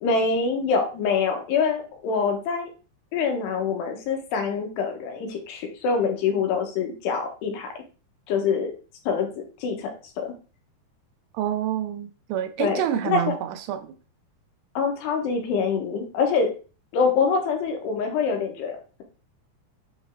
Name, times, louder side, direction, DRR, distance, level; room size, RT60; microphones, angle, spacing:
voice 1, 0.0-2.7 3.1-7.7 8.3-8.7 9.1-9.3 9.6-9.9 10.2-10.3 12.6-13.2 14.7-16.5 16.9-19.0, left 5 dB, 85° left, 4 dB, 3.3 m, -25 dB
voice 2, 11.3-13.9, right 10 dB, 85° right, 8 dB, 2.9 m, -28 dB
9.7 x 3.3 x 3.6 m, 0.35 s
omnidirectional pair, 4.8 m